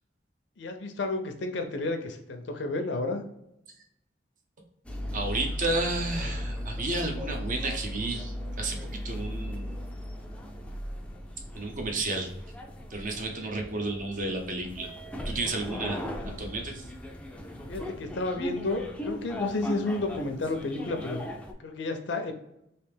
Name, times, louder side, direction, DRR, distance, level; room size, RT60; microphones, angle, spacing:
voice 1, 0.6-3.2 17.7-21.3 21.6-22.3, left 2 dB, 75° left, 6 dB, 0.6 m, -31 dB
sound 1, 4.8-21.5, left 1 dB, 5° left, 0.4 m, -37 dB
voice 2, 5.1-9.8 11.5-12.3 12.9-14.9 15.2-16.0 16.3-16.8, right 2 dB, 45° right, 4 dB, 0.7 m, -32 dB
3.3 x 2.8 x 3.3 m, 0.80 s
head